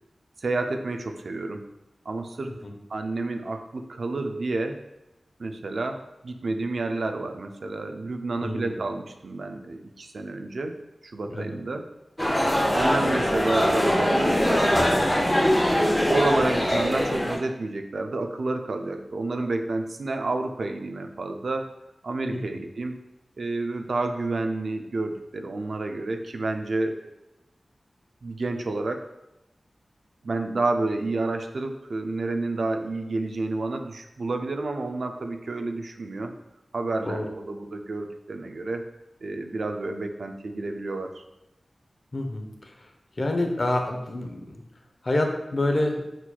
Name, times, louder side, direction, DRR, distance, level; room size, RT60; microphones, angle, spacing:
voice 1, 0.4-1.7 2.1-2.6 2.9-4.8 5.4-10.8 11.0-11.9 12.7-15.4 16.1-21.7 22.0-23.0 23.4-27.1 28.2-29.0 30.2-36.3 36.7-38.8 39.2-41.2, right 2 dB, 75° right, 5 dB, 0.4 m, -30 dB
voice 2, 8.4-8.8 11.2-11.6 22.3-22.4 37.0-37.3 42.1-42.9 43.2-44.6 45.0-46.0, left 1 dB, 50° left, 3 dB, 0.6 m, -28 dB
sound 1, 12.2-17.4, equal, 15° left, 0.8 m, -22 dB
4.4 x 4.1 x 2.2 m, 0.94 s
wide cardioid pair, 60°, 0 cm